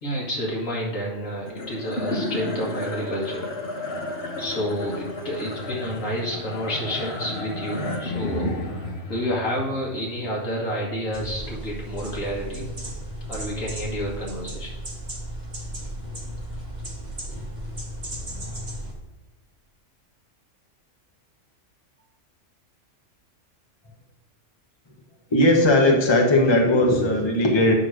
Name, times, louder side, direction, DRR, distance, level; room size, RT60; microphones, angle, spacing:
voice 1, 0.0-3.5 4.0-12.7 13.3-14.7, equal, 85° left, -3 dB, 2.2 m, -30 dB
sound 1, 1.5-12.0, left 2 dB, 55° left, 1.3 m, -33 dB
sound 2, 11.1-18.9, right 1 dB, 35° right, 1.4 m, -35 dB
voice 2, 25.3-27.7, left 1 dB, 20° left, 0 dB, 1.2 m, -18 dB
9.0 x 3.2 x 6.3 m, 1.1 s
omnidirectional pair, 1.3 m